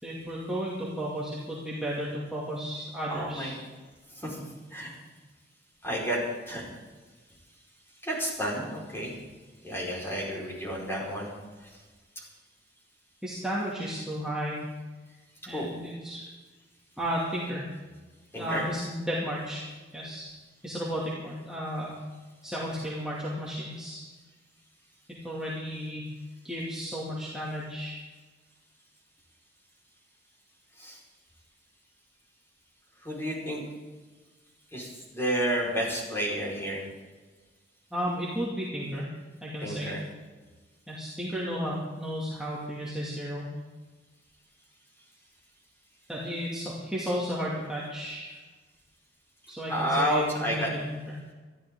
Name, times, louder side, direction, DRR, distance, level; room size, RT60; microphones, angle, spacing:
voice 1, 0.0-3.5 13.2-14.7 15.5-16.3 17.0-17.7 18.3-19.6 19.9-20.3 20.6-22.0 22.4-24.0 25.2-26.1 26.4-28.0 37.9-39.1 39.4-39.9 40.9-43.5 46.1-48.4 49.5-50.8 51.1-51.2, equal, 5° right, -7 dB, 2.5 m, -33 dB
voice 2, 3.1-3.5 4.1-4.4 4.7-4.9 5.8-6.2 6.5-6.7 8.0-9.1 9.6-11.3 11.6-11.8 15.5-15.7 18.3-18.6 30.8-31.0 33.0-33.6 34.7-36.8 39.6-40.0 49.7-50.7, equal, 15° left, -4 dB, 4.8 m, -30 dB
21.5 x 14.0 x 3.8 m, 1.3 s
head